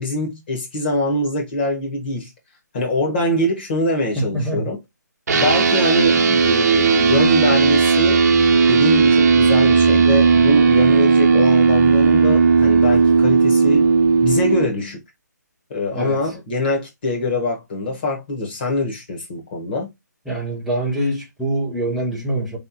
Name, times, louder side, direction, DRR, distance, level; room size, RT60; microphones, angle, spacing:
voice 1, 0.0-2.3 2.7-4.8 5.3-8.2 8.7-13.9 14.2-15.0 15.7-19.9, left 1 dB, 30° left, 1.5 m, -23 dB
voice 2, 4.2-4.7 15.9-16.2 20.3-22.6, right 1 dB, ahead, 0.8 m, -24 dB
sound 1, 5.3-14.6, right 5 dB, 60° right, 0.8 m, -15 dB
3.5 x 3.1 x 2.9 m
hypercardioid pair, 170°, 10 cm